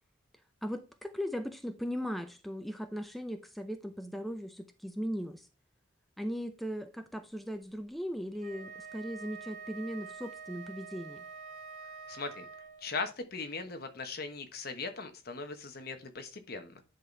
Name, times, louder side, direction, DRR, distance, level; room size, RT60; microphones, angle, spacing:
voice 1, 0.6-5.5 6.2-11.2, equal, ahead, 0.5 m, -38 dB
Wind instrument woodwind instrument, 8.3-13.0, right 5 dB, 40° right, 1.4 m, -46 dB
voice 2, 12.1-12.4 12.8-16.8, left 4 dB, 55° left, 1.1 m, -39 dB
10.0 x 4.1 x 3.3 m
head